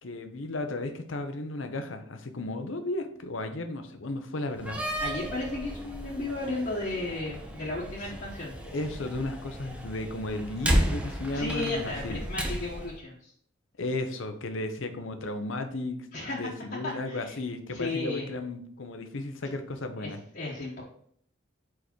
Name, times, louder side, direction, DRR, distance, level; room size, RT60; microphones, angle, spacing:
voice 1, 0.0-4.8 8.7-12.2 13.8-20.2, left 2 dB, 85° left, 7 dB, 0.8 m, -34 dB
Slam, 4.5-12.9, equal, 5° right, 0.6 m, -33 dB
voice 2, 5.0-8.5 11.3-13.3 16.1-16.5 17.1-17.4 17.7-18.3 20.0-20.1 20.3-20.8, left 2 dB, 50° left, -6 dB, 1.2 m, -34 dB
4.8 x 4.8 x 4.4 m, 0.62 s
head